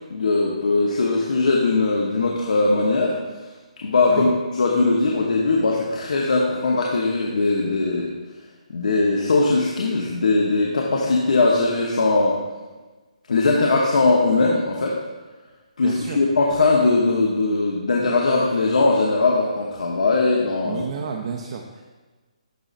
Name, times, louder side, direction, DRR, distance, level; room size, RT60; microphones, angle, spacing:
voice 1, 0.1-3.2 3.8-8.1 8.7-12.4 13.3-15.0 15.8-20.8, left 3 dB, 80° left, -2 dB, 0.9 m, -20 dB
voice 2, 15.8-16.2 20.6-21.8, right 6 dB, 45° right, 2 dB, 0.6 m, -31 dB
11.5 x 3.9 x 2.5 m, 1.3 s
hypercardioid pair, 155°, 4 cm